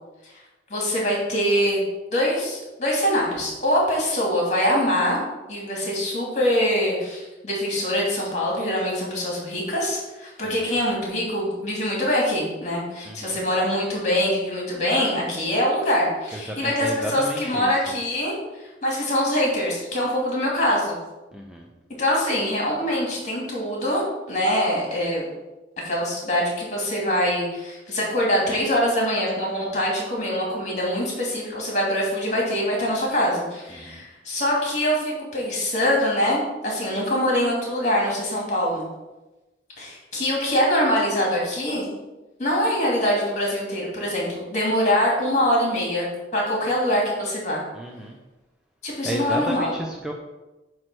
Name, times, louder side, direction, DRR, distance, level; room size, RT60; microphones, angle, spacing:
voice 1, 0.7-1.8 2.1-5.2 5.5-21.0 22.0-25.3 25.8-38.8 39.8-41.9 42.4-46.1 46.3-47.6 48.8-49.7, equal, 40° left, -3 dB, 2.5 m, -24 dB
voice 2, 13.1-13.4 16.3-17.9 21.3-21.7 33.7-34.0 47.7-48.2 49.0-50.1, right 1 dB, 5° right, 0 dB, 0.5 m, -32 dB
8.7 x 3.2 x 6.1 m, 1.1 s
head